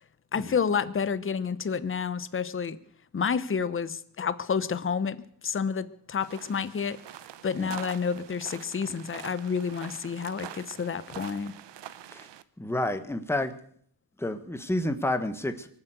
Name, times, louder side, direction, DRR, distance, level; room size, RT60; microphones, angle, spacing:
voice 1, 0.3-2.8 3.1-5.2 5.4-7.0 7.4-11.5, left 6 dB, 30° left, 14 dB, 0.9 m, -29 dB
sound 1, 6.2-12.4, right 11 dB, 70° right, 1.0 m, -45 dB
voice 2, 12.6-13.5 14.2-15.7, left 1 dB, 5° left, 8 dB, 1.4 m, -30 dB
23.0 x 7.9 x 8.0 m, 0.63 s
cardioid pair, 105°, 44 cm